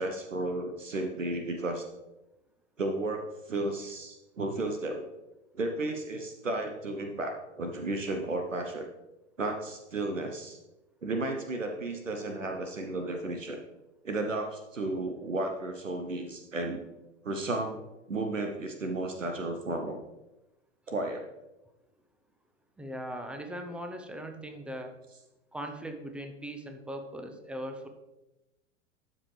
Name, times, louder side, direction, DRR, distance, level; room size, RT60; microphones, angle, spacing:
voice 1, 0.0-1.8 2.8-5.1 5.5-8.9 9.4-10.6 11.0-13.6 14.0-16.8 17.2-17.8 18.1-20.0 20.9-21.3, right 2 dB, 85° right, 5 dB, 0.9 m, -33 dB
voice 2, 22.8-24.9 25.5-27.9, equal, 5° right, 5 dB, 0.6 m, -39 dB
12.0 x 5.0 x 3.3 m, 0.98 s
figure-of-eight pair, 95°, 37 cm